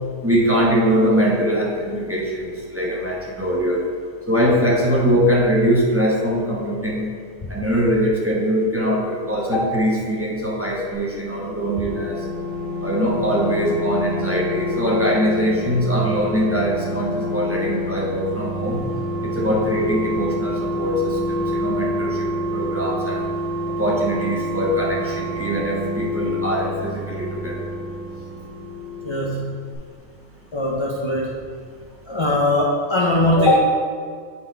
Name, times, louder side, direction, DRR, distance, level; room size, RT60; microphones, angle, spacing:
voice 1, 0.2-3.8 4.3-7.1 7.5-12.3 12.8-18.8 19.2-23.2 23.8-27.7, equal, 10° right, -4 dB, 0.9 m, -22 dB
sound 1, 11.1-29.4 29.7-29.8, left 1 dB, 60° left, 2.3 m, -27 dB
voice 2, 29.0-29.5 30.5-31.3 32.1-33.6, left 1 dB, 35° left, -2 dB, 0.5 m, -20 dB
8.6 x 4.1 x 3.9 m, 2.1 s
omnidirectional pair, 1.3 m